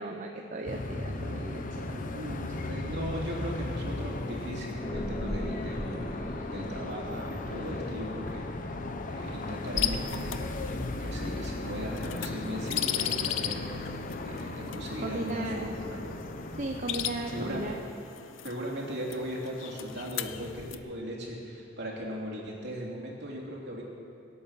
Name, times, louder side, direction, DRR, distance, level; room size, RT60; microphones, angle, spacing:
voice 1, 0.0-2.4 15.0-15.7 16.5-17.8, right 2 dB, 40° right, 2 dB, 0.9 m, -36 dB
sound 1, 0.7-17.8, left 2 dB, 45° left, 0.9 m, -37 dB
voice 2, 2.1-8.7 9.1-10.6 11.0-16.2 17.2-17.7 18.4-23.8, equal, 60° right, -2 dB, 3.3 m, -38 dB
sound 2, 4.8-12.8, left 1 dB, 15° left, 1.1 m, -40 dB
sound 3, 9.8-20.8, left 11 dB, 75° left, 0.7 m, -37 dB
25.0 x 8.6 x 5.9 m, 2.6 s
head